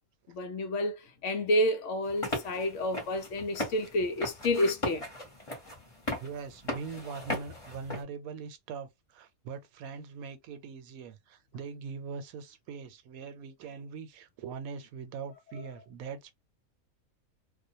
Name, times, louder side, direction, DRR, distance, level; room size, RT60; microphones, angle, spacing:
voice 1, 0.3-5.1, left 1 dB, 65° left, 0.9 m, -29 dB
sound 1, 2.0-8.0, left 1 dB, 25° left, 1.1 m, -38 dB
voice 2, 6.2-16.3, right 5 dB, 80° right, 1.0 m, -42 dB
2.4 x 2.2 x 2.7 m
omnidirectional pair, 1.5 m